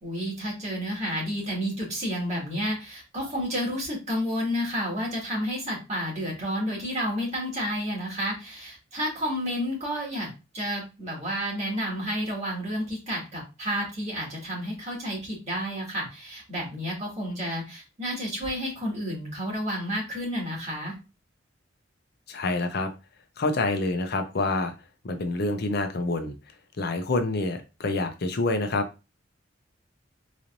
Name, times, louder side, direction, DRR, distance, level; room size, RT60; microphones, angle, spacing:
voice 1, 0.0-21.0, equal, 40° right, -3 dB, 2.1 m, -31 dB
voice 2, 22.3-22.9 23.4-24.7 25.0-26.3 26.8-28.9, left 2 dB, 55° left, 6 dB, 0.6 m, -27 dB
4.0 x 3.1 x 2.5 m, 0.28 s
head